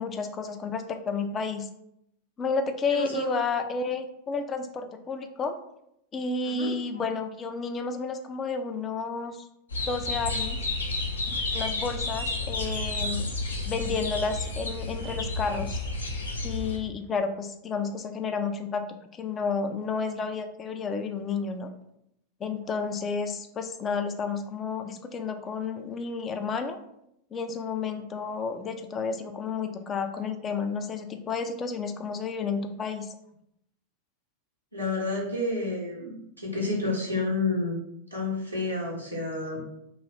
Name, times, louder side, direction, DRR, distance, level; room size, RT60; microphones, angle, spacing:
voice 1, 0.0-1.7 2.4-5.5 6.1-9.5 9.9-10.6 11.5-13.3 13.6-15.8 16.4-18.9 19.1-21.7 22.4-26.8 27.3-33.1, left 5 dB, 25° left, 7 dB, 0.3 m, -31 dB
voice 2, 2.9-3.3 6.4-6.7 34.7-37.8 38.1-39.6, left 2 dB, 85° right, -5 dB, 0.7 m, -30 dB
Birds Zárate Argentiana, 9.7-16.8, left 2 dB, 75° left, 0.6 m, -31 dB
2.9 x 2.3 x 3.2 m, 0.78 s
figure-of-eight pair, 90°, 0 cm